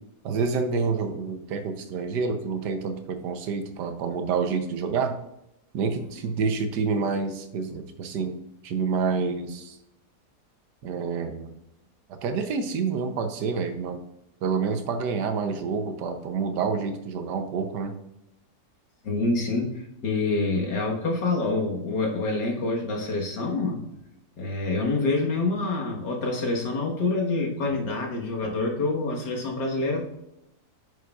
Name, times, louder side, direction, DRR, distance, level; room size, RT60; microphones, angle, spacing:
voice 1, 0.2-5.1 5.7-8.3 8.6-9.8 10.8-11.5 12.1-14.0 14.4-17.9, right 5 dB, 80° right, 7 dB, 1.4 m, -28 dB
voice 2, 19.0-23.8 24.4-30.0, left 3 dB, 80° left, -1 dB, 2.0 m, -26 dB
9.2 x 6.4 x 2.4 m, 0.84 s
omnidirectional pair, 1.8 m